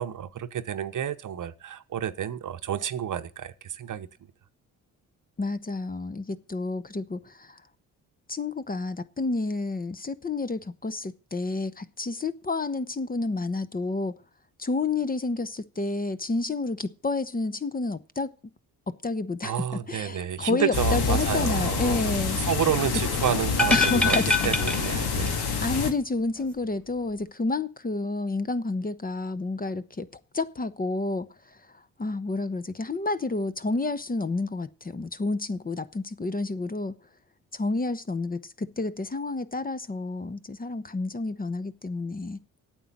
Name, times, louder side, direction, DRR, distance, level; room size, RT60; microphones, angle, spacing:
voice 1, 0.0-4.1 19.4-22.1 22.5-24.2 24.4-25.5, right 9 dB, 50° right, 0.9 m, -30 dB
voice 2, 5.4-7.6 8.3-14.2 14.6-18.3 18.9-22.4 23.7-24.4 24.9-30.1 30.3-37.0 37.5-42.4, left 3 dB, 20° left, 0.9 m, -30 dB
sound 1, 20.7-25.9, left 5 dB, 70° left, 1.9 m, -27 dB
sound 2, 23.5-25.5 25.7-25.8, left 2 dB, 5° left, 2.1 m, -25 dB
9.0 x 7.9 x 7.3 m
supercardioid pair, 55°, 40 cm